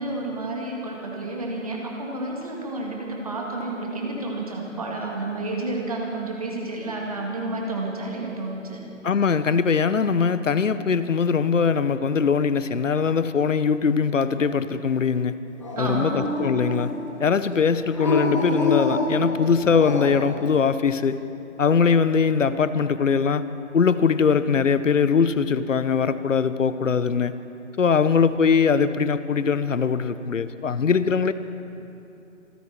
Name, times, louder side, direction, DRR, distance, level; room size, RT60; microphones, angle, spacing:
voice 1, 0.0-8.8 15.8-16.2, right 2 dB, 30° right, -1 dB, 1.8 m, -30 dB
voice 2, 9.0-15.4 15.8-16.9 17.2-21.2 21.6-23.4 23.7-27.3 27.8-31.3, left 6 dB, 70° left, 14 dB, 0.8 m, -21 dB
Dog, 15.6-17.1 17.9-20.3, left 2 dB, 25° left, 1.5 m, -26 dB
26.0 x 10.5 x 4.3 m, 2.8 s
figure-of-eight pair, 175°, 39 cm